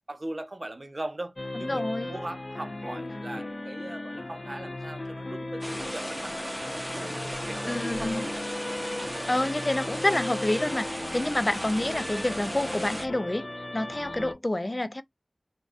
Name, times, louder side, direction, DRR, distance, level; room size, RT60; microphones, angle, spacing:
voice 1, 0.1-8.3, right 1 dB, 50° right, 0.6 m, -40 dB
sound 1, 1.4-14.3, left 2 dB, 55° left, 0.7 m, -37 dB
voice 2, 1.6-2.1 7.7-8.3 9.3-15.0, left 1 dB, 35° left, 0.3 m, -28 dB
sound 2, 5.6-13.1, equal, 10° right, 0.7 m, -36 dB
3.5 x 2.3 x 2.4 m
wide cardioid pair, 50°, 0 cm